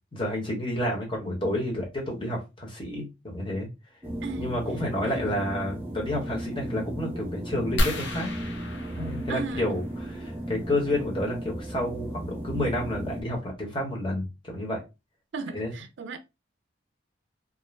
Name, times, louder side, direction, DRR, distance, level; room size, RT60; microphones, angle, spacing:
voice 1, 0.1-3.7 4.4-8.3 8.9-14.8 15.5-15.7, left 1 dB, 25° left, 0.9 m, -30 dB
sound 1, 4.0-13.2, right 1 dB, 10° right, 0.4 m, -35 dB
voice 2, 4.2-4.5 5.0-5.4 9.3-9.7 15.3-16.2, right 3 dB, 70° right, 0.4 m, -36 dB
sound 2, 7.8-10.2 11.8-11.9 12.5-12.6 12.9-13.1, left 1 dB, 65° left, 0.7 m, -31 dB
2.5 x 2.0 x 3.1 m
head